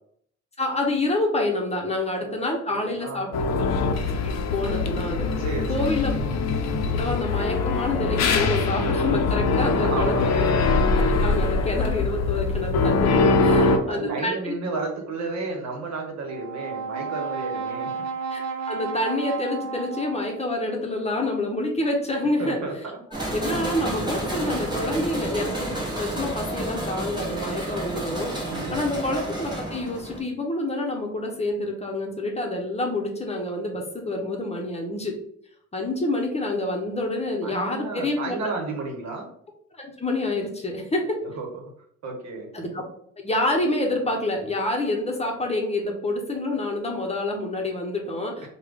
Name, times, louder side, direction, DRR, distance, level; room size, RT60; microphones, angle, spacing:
voice 1, 0.6-3.7 4.0-5.4 5.7-6.1 6.9-10.5 10.9-14.5 18.3-22.6 23.3-28.3 28.7-35.1 35.7-38.4 39.8-41.2 42.5-42.8 43.2-48.5, left 2 dB, 20° left, 1 dB, 0.8 m, -27 dB
voice 2, 2.7-3.6 5.4-6.2 9.8-10.5 13.5-17.9 22.4-23.0 28.4-29.0 37.4-39.3 41.2-41.5 42.0-42.5, right 3 dB, 65° right, 1 dB, 1.0 m, -32 dB
sound 1, 3.3-13.8, left 3 dB, 60° left, 0.5 m, -22 dB
Brass instrument, 16.2-20.6, right 5 dB, 80° right, 0.5 m, -32 dB
sound 2, 23.1-30.2, right 1 dB, 15° right, 1.2 m, -30 dB
3.4 x 2.2 x 3.4 m, 0.66 s
cardioid pair, 90°, 30 cm